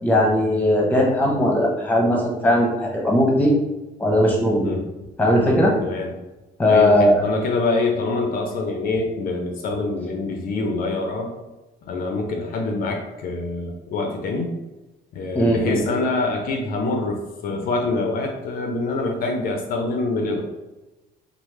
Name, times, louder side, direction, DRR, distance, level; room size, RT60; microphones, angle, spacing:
voice 1, 0.0-3.5 4.0-4.7 5.2-5.8 6.6-7.2 15.3-15.9, left 1 dB, 10° left, -2 dB, 0.8 m, -18 dB
voice 2, 5.8-6.1 6.7-11.3 11.9-14.5 15.1-20.4, left 3 dB, 60° left, 3 dB, 0.4 m, -25 dB
3.1 x 2.0 x 3.1 m, 1.1 s
cardioid pair, 110°, 17 cm